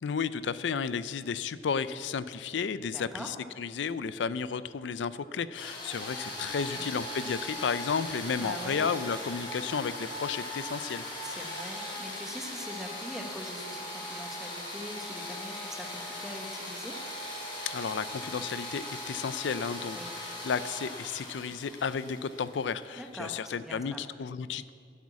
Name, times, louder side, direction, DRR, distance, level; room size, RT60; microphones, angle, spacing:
voice 1, 0.0-11.0 17.6-24.7, left 6 dB, 85° left, 15 dB, 0.4 m, -33 dB
voice 2, 2.9-3.3 6.5-6.8 8.4-8.8 11.2-17.0 19.9-20.1 23.0-23.3 23.6-24.0, equal, ahead, 2 dB, 1.2 m, -43 dB
sound 1, 5.5-23.3, left 1 dB, 30° left, 3.9 m, -39 dB
11.0 x 8.2 x 8.3 m, 2.2 s
head